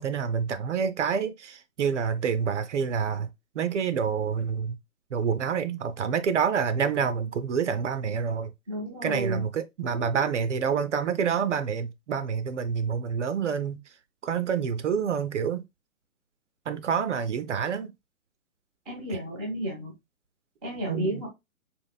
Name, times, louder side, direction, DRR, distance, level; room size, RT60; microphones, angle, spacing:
voice 1, 0.0-3.3 3.6-4.8 5.1-8.5 9.0-13.8 14.2-15.6 16.7-17.9 19.1-19.2 20.9-21.2, right 6 dB, 55° right, 0.5 m, -27 dB
voice 2, 8.7-9.4 18.9-19.9 20.6-21.3, right 1 dB, ahead, 0.4 m, -32 dB
3.6 x 2.5 x 2.2 m
figure-of-eight pair, 125°, 43 cm